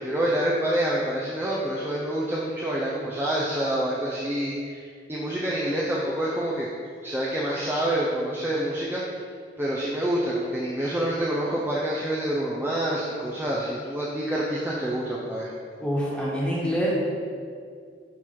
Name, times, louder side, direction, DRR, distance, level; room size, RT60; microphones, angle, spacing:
voice 1, 0.0-6.7 7.0-9.0 9.6-15.5, right 1 dB, 10° right, -6 dB, 0.7 m, -27 dB
voice 2, 15.8-16.9, equal, 5° left, -6 dB, 1.5 m, -26 dB
10.0 x 4.0 x 4.7 m, 2.2 s
head